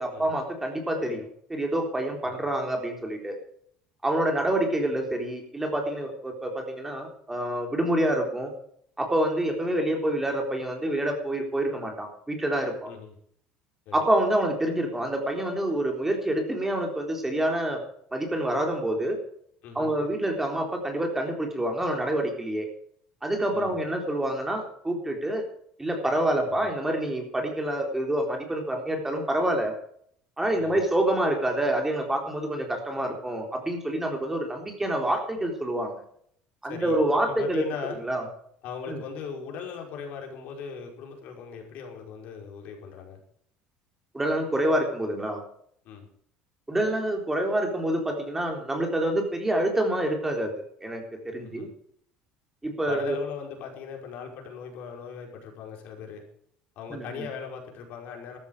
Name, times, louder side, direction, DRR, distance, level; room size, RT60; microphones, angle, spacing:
voice 1, 0.0-3.4 4.0-8.5 9.0-12.9 13.9-17.8 18.1-19.2 19.8-22.7 23.2-25.4 25.8-29.7 30.4-35.9 36.6-37.6 38.0-38.2 38.9-39.0 44.1-45.4 46.7-51.7 52.6-53.2 56.9-57.3, right 1 dB, 10° right, 3 dB, 3.7 m, -27 dB
voice 2, 12.9-13.2 13.9-14.0 19.6-19.9 23.5-23.7 26.5-26.7 30.6-30.8 36.6-37.0 37.3-38.0 38.6-43.2 45.8-46.1 51.4-51.7 52.8-56.2 56.8-58.4, left 6 dB, 65° left, 1 dB, 5.2 m, -39 dB
14.0 x 13.0 x 5.0 m, 0.66 s
cardioid pair, 115°, 3 cm